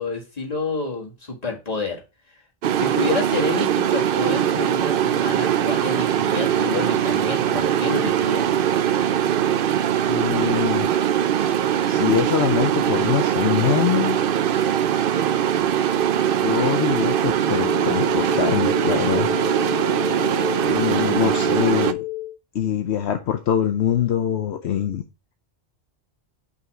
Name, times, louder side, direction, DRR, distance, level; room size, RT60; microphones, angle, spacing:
voice 1, 0.0-2.0 2.7-8.6, left 3 dB, 35° left, -1 dB, 2.0 m, -29 dB
sound 1, 2.6-21.9, right 10 dB, 60° right, 0.7 m, -21 dB
voice 2, 10.1-10.9 11.9-14.2 16.4-19.3 20.7-22.0 22.5-25.0, left 9 dB, 70° left, 6 dB, 1.0 m, -23 dB
sound 2, 17.4-22.3, left 18 dB, 25° right, 3.3 m, -30 dB
5.6 x 4.1 x 6.0 m, 0.29 s
omnidirectional pair, 1.2 m